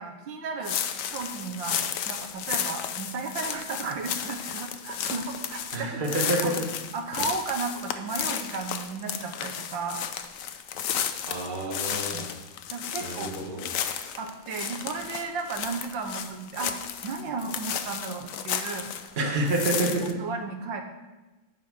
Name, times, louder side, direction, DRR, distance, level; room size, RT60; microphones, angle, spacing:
voice 1, 0.0-6.6 6.9-10.0 11.9-12.2 12.7-13.3 14.2-16.8 17.0-18.9 20.2-20.8, right 4 dB, 85° right, 3 dB, 1.6 m, -34 dB
sound 1, 0.6-19.1 19.5-20.1, left 9 dB, 75° left, 0.7 m, -33 dB
voice 2, 5.7-6.5 11.3-12.3 13.0-13.7 19.2-20.0, right 2 dB, 30° right, -1 dB, 1.4 m, -28 dB
9.8 x 5.0 x 6.1 m, 1.1 s
omnidirectional pair, 2.0 m